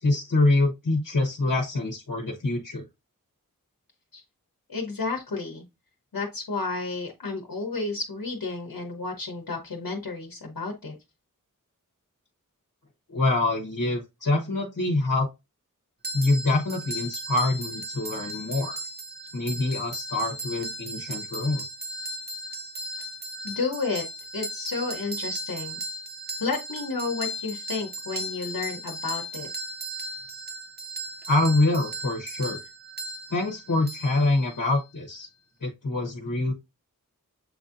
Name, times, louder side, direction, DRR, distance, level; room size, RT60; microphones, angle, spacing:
voice 1, 0.0-2.8 13.1-15.3 16.1-18.8 19.3-21.6 31.3-32.6 33.3-35.3 35.6-36.5, left 2 dB, 65° left, 1 dB, 1.1 m, -25 dB
voice 2, 4.7-5.6 6.1-10.9 23.4-24.0 24.3-25.8 26.4-29.5, left 4 dB, 90° left, 1 dB, 1.0 m, -31 dB
sound 1, 16.0-34.8, right 1 dB, 30° right, 0.7 m, -36 dB
7.6 x 2.7 x 2.5 m, 0.24 s
wide cardioid pair, 50°, 33 cm